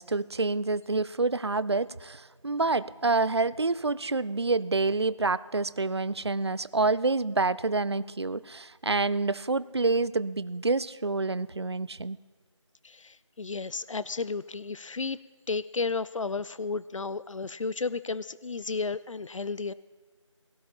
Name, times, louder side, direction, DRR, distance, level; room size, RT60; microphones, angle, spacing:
voice 1, 0.0-12.2, right 3 dB, 55° right, 0.4 m, -27 dB
voice 2, 12.8-15.2 15.5-19.7, left 4 dB, 80° left, 0.4 m, -33 dB
17.0 x 15.0 x 2.9 m
figure-of-eight pair, 180°, 16 cm